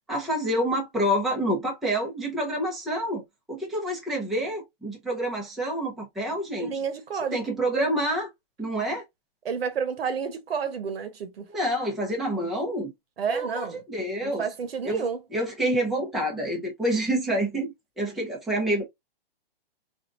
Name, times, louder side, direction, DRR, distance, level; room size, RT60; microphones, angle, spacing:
voice 1, 0.1-3.2 3.5-6.7 7.3-8.3 8.6-9.0 11.5-12.9 13.3-14.5 14.8-15.1 15.3-18.8, right 1 dB, ahead, 0.5 m, -27 dB
voice 2, 6.6-7.4 9.4-11.5 13.2-13.8 14.2-15.2, right 6 dB, 80° right, 1.0 m, -30 dB
3.6 x 2.3 x 2.4 m
hypercardioid pair, 145°, 29 cm